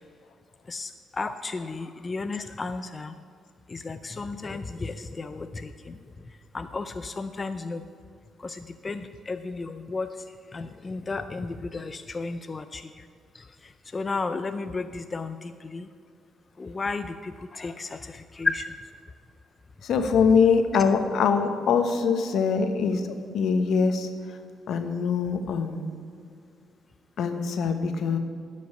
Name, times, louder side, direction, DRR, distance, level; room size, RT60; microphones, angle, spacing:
voice 1, 0.7-3.1 3.7-5.9 6.5-7.8 8.4-10.1 10.5-12.8 13.9-15.9 16.6-18.7, left 3 dB, 30° left, 9 dB, 0.4 m, -33 dB
voice 2, 19.8-23.0 23.3-24.1 24.7-25.9 27.2-28.2, left 5 dB, 70° left, 7 dB, 1.0 m, -23 dB
11.5 x 5.3 x 8.0 m, 2.2 s
cardioid pair, 90°, 0 cm